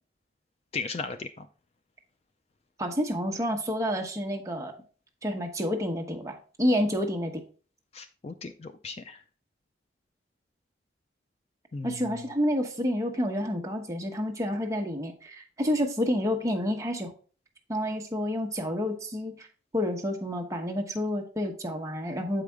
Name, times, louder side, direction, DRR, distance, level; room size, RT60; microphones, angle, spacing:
voice 1, 0.7-1.5 7.9-9.2 11.7-12.3, left 4 dB, 35° left, 9 dB, 0.4 m, -37 dB
voice 2, 2.8-4.7 5.2-7.4 11.8-17.1 17.7-19.5 19.7-22.4, equal, 20° right, 1 dB, 1.0 m, -29 dB
7.5 x 4.9 x 3.4 m, 0.39 s
head